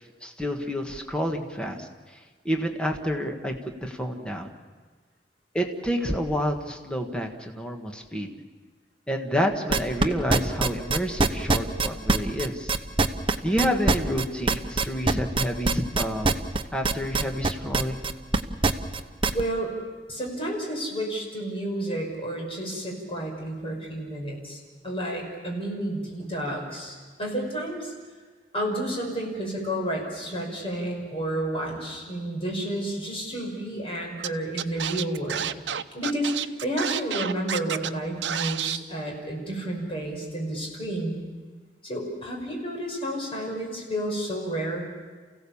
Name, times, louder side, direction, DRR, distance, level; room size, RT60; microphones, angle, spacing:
voice 1, 0.2-1.9 2.4-3.5 3.8-4.5 5.5-8.3 9.1-12.7 13.4-16.4 16.7-18.0, equal, 5° left, 3 dB, 1.6 m, -28 dB
sound 1, 9.7-19.4, right 3 dB, 30° right, 0.9 m, -22 dB
voice 2, 19.3-19.7 20.1-24.6 24.8-27.9 28.5-35.5 35.9-41.2 41.8-44.8, right 1 dB, 35° left, -1 dB, 5.7 m, -31 dB
Scratching (performance technique), 34.2-34.3 34.6-37.9 38.2-38.8, right 9 dB, 85° right, 0.7 m, -29 dB
29.0 x 16.5 x 7.2 m, 1.4 s
head